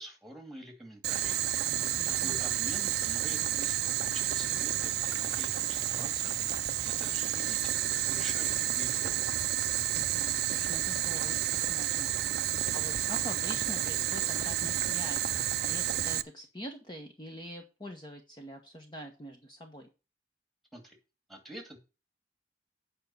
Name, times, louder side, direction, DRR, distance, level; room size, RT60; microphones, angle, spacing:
voice 1, 0.0-1.4 2.1-6.4 6.8-9.3 20.7-21.0 21.3-21.8, right 1 dB, ahead, 2.4 m, -46 dB
Boiling, 1.0-16.2, right 12 dB, 60° right, 0.5 m, -30 dB
voice 2, 1.7-2.4 9.9-11.4 11.7-19.9, equal, 25° left, 1.2 m, -45 dB
8.6 x 5.4 x 7.0 m
head